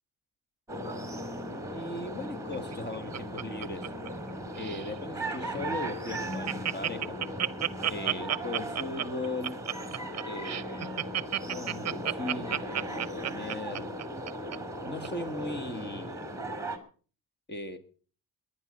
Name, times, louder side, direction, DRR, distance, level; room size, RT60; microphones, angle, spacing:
sound 1, 0.7-16.8, right 1 dB, 10° right, 2.6 m, -37 dB
voice 1, 1.7-3.9 4.5-7.4 7.9-9.6 10.3-11.0 11.5-13.9 14.8-16.2 17.5-17.8, left 2 dB, 30° left, 10 dB, 2.1 m, -38 dB
Laughter, 2.5-4.3 4.6-4.9 5.4-5.5 5.8-5.9 6.1-14.6 15.0-15.1, right 11 dB, 50° right, 0.7 m, -31 dB
19.0 x 11.0 x 5.5 m, 0.42 s
cardioid pair, 110°, 35 cm